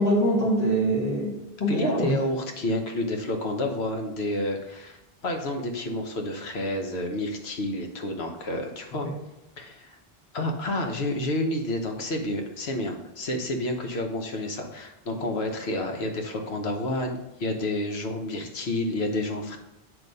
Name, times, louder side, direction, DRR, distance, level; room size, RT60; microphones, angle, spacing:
voice 1, 0.0-2.1 9.0-9.1, right 1 dB, 40° left, -6 dB, 1.2 m, -24 dB
voice 2, 1.7-9.1 9.6-10.0 10.3-19.6, left 1 dB, 80° left, 3 dB, 1.2 m, -29 dB
7.9 x 3.1 x 5.3 m, 0.89 s
omnidirectional pair, 1.1 m